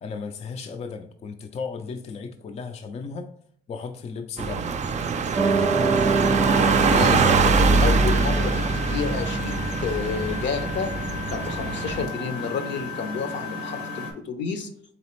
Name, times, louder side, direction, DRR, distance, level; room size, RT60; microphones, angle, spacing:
voice 1, 0.0-3.3 3.7-4.8, left 5 dB, 35° left, 6 dB, 0.4 m, -35 dB
sound 1, 4.4-12.0, right 4 dB, 35° right, 0.4 m, -23 dB
Piano, 5.4-11.9, right 3 dB, 10° right, 0.7 m, -27 dB
Engine, 6.4-14.1, left 3 dB, 85° left, 1.1 m, -34 dB
voice 2, 6.9-10.9 11.3-14.7, left 5 dB, 65° left, 7 dB, 0.7 m, -30 dB
4.1 x 3.3 x 3.0 m, 0.64 s
cardioid pair, 90°, 20 cm